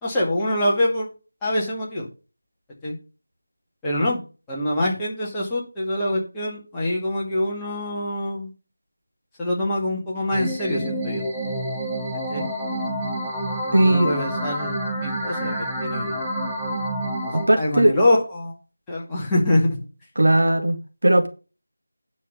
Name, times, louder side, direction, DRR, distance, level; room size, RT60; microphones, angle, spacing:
voice 1, 0.0-1.1 1.4-2.1 2.8-3.0 3.8-4.2 4.5-8.5 9.4-11.2 12.3-12.4 13.7-16.3 17.2-18.5 18.9-19.8, left 1 dB, 10° left, -6 dB, 2.2 m, -25 dB
sound 1, 10.3-17.5, right 1 dB, 10° right, 1.3 m, -28 dB
voice 2, 13.7-14.1 17.3-18.0 20.2-20.8 21.0-21.3, right 1 dB, 55° right, 5 dB, 1.9 m, -17 dB
9.9 x 6.4 x 5.2 m, 0.33 s
figure-of-eight pair, 165°, 0 cm